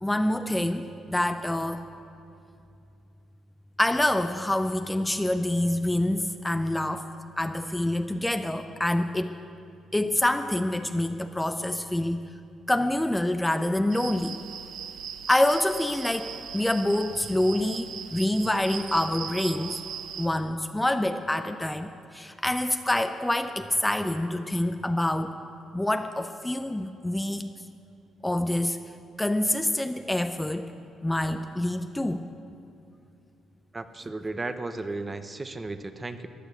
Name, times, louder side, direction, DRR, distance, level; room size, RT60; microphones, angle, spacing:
voice 1, 0.0-1.8 3.8-7.1 7.4-9.4 9.9-12.2 12.7-14.4 15.3-19.8 20.2-25.3 25.7-27.5 28.2-28.8 29.2-30.7 31.0-32.2 34.0-34.1, left 1 dB, 10° left, 8 dB, 0.6 m, -26 dB
sound 1, 13.9-20.3, right 8 dB, 70° right, 0.8 m, -39 dB
voice 2, 33.7-36.3, right 2 dB, 25° right, 10 dB, 0.8 m, -34 dB
15.0 x 10.0 x 8.3 m, 2.6 s
cardioid pair, 90°, 0 cm